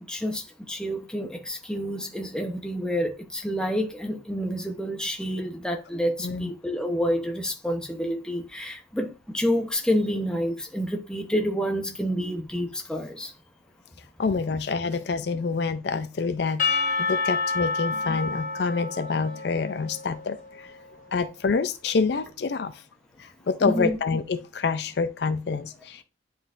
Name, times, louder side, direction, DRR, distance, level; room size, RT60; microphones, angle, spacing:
voice 1, 0.1-13.3 23.6-24.0, equal, 5° left, 0.8 m, -28 dB
voice 2, 14.2-16.8 17.1-20.4 21.1-22.7 23.5-26.0, left 4 dB, 60° left, 0.4 m, -27 dB
Percussion / Church bell, 16.6-20.9, left 4 dB, 40° left, 1.0 m, -29 dB
10.0 x 3.8 x 2.5 m
head